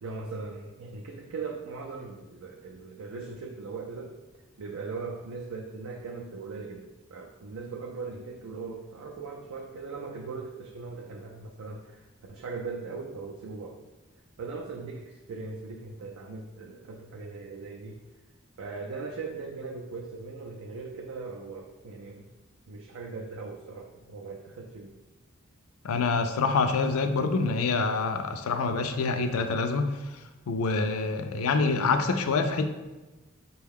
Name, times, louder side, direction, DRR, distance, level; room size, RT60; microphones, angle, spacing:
voice 1, 0.0-13.8 14.4-18.0 18.6-22.3 22.7-25.0, right 4 dB, 80° right, 0 dB, 0.4 m, -39 dB
voice 2, 25.8-30.2 30.5-32.7, left 4 dB, 85° left, 7 dB, 0.4 m, -26 dB
5.3 x 2.3 x 3.5 m, 1.1 s
head